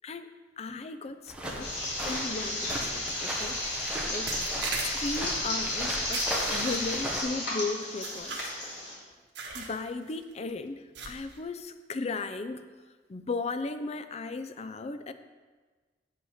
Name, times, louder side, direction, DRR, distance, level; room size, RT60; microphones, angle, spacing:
voice 1, 0.6-1.2 1.4-1.7 2.0-4.3 4.8-6.2 6.5-8.5 9.5-12.6 13.1-15.1, left 3 dB, 35° left, 9 dB, 0.4 m, -36 dB
sound 1, 1.3-7.2, right 1 dB, 5° right, 1.0 m, -37 dB
sound 2, 1.6-8.9, left 1 dB, 65° left, 3.0 m, -33 dB
sound 3, 3.3-3.5 4.3-5.2 6.1-7.1 8.0-8.8 9.3-9.8 10.1-10.3 10.9-11.4, right 4 dB, 90° right, 1.3 m, -38 dB
8.1 x 5.5 x 5.6 m, 1.4 s
head